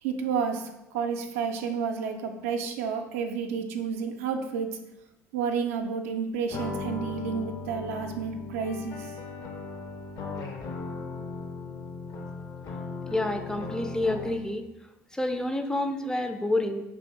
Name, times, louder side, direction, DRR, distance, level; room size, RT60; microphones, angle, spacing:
voice 1, 0.0-4.8 5.3-9.1, right 6 dB, 80° right, 4 dB, 0.4 m, -31 dB
sound 1, 6.5-14.5, left 3 dB, 50° left, 0.6 m, -37 dB
voice 2, 13.1-14.7 15.1-16.8, left 1 dB, 10° left, 6 dB, 0.4 m, -28 dB
2.7 x 2.5 x 4.1 m, 0.92 s
hypercardioid pair, 60°, 8 cm